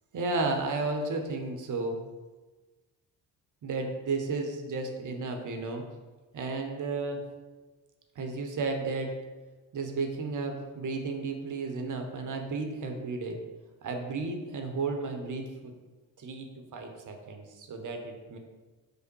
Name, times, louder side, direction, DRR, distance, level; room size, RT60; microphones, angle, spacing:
voice 1, 0.1-2.0 3.6-5.8 6.3-7.2 8.2-9.1 9.7-13.4 13.8-15.7 16.2-18.4, right 3 dB, 40° right, 3 dB, 0.9 m, -33 dB
5.2 x 2.1 x 4.5 m, 1.2 s
hypercardioid pair, 45°, 47 cm